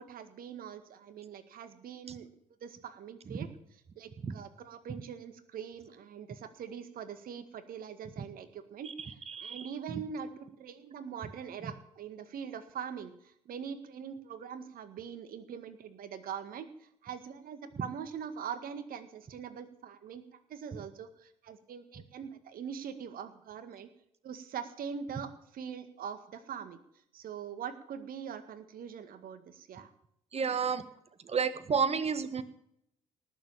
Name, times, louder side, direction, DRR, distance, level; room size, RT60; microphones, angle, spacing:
voice 1, 0.0-2.3 2.6-8.9 9.4-23.9 24.2-26.8 27.1-29.9, right 7 dB, 55° right, 11 dB, 2.0 m, -43 dB
voice 2, 9.3-9.7 30.3-30.8 31.3-32.4, right 6 dB, 35° right, 13 dB, 1.7 m, -30 dB
19.0 x 7.4 x 8.8 m, 0.73 s
hypercardioid pair, 50°, 17 cm